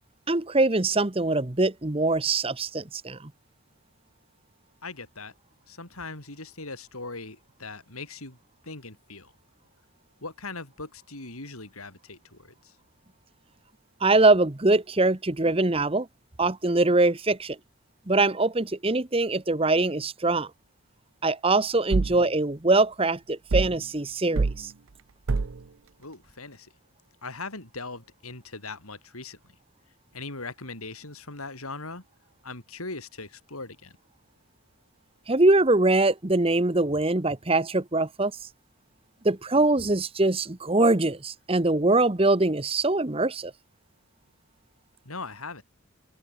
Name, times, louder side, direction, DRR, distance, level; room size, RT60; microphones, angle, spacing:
voice 1, 0.3-3.2 14.0-16.1 16.4-17.6 18.1-20.5 21.2-24.7 35.3-38.3 39.2-43.5, right 2 dB, 25° right, 1.0 m, -23 dB
voice 2, 4.8-5.3 5.7-8.4 8.6-9.3 10.2-12.8 26.0-26.7 27.2-29.6 30.1-32.0 32.4-33.9 45.0-45.6, left 3 dB, 80° left, 6.3 m, -40 dB
sound 1, 21.9-22.2 23.5-23.8 24.3-24.6 25.3-25.6, right 3 dB, 65° right, 0.6 m, -25 dB
head